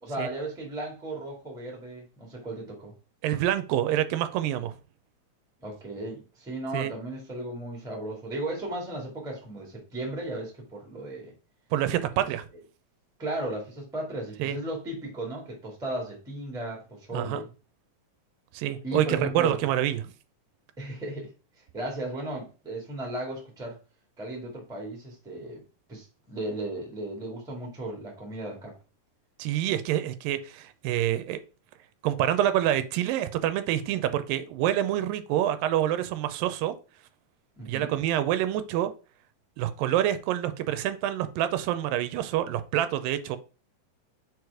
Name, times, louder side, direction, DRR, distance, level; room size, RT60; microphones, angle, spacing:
voice 1, 0.0-2.9 5.6-11.3 12.2-12.3 13.2-17.5 18.8-19.6 20.8-21.3 21.7-23.8 24.2-25.6 25.9-28.7 37.6-37.9, right 1 dB, ahead, 1.1 m, -35 dB
voice 2, 3.2-4.7 6.7-6.9 11.7-12.4 14.4-14.6 17.1-17.4 18.5-20.1 29.4-31.4 32.0-36.7 37.7-38.9 39.6-43.4, right 12 dB, 85° right, 2.3 m, -27 dB
4.8 x 4.6 x 4.7 m
omnidirectional pair, 4.0 m